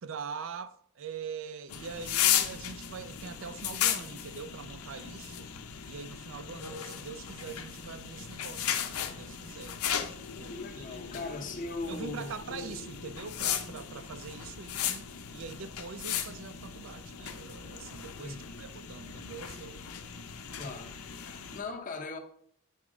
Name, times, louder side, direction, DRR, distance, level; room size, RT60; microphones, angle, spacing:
voice 1, 0.0-5.5 5.9-9.8 10.4-11.3 11.9-19.8, right 6 dB, 60° right, 0.4 m, -43 dB
sound 1, 1.7-21.6, left 9 dB, 85° left, 0.6 m, -36 dB
voice 2, 10.4-12.3 12.7-12.8 18.2-18.6 20.6-22.2, left 3 dB, 35° left, 0.7 m, -40 dB
7.3 x 3.0 x 4.8 m
head